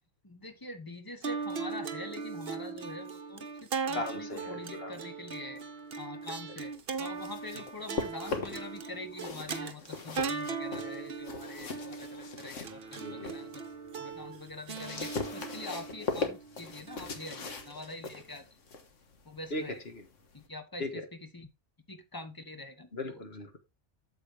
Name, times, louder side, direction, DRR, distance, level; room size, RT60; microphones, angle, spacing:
voice 1, 0.2-5.7 6.0-6.7 7.0-13.6 14.0-18.6 19.2-19.8 20.3-21.5 21.9-23.2, left 2 dB, 20° left, 7 dB, 1.2 m, -45 dB
sound 1, 1.2-17.7, right 5 dB, 55° right, 1.1 m, -39 dB
voice 2, 3.9-4.9 13.0-13.4 19.5-19.6 20.8-20.9 22.9-23.6, left 2 dB, 55° left, 6 dB, 1.8 m, -37 dB
sound 2, 6.9-8.8 9.1-13.5 13.9-20.5, left 4 dB, 90° left, 1.7 m, -40 dB
8.5 x 7.4 x 3.3 m, 0.24 s
omnidirectional pair, 1.2 m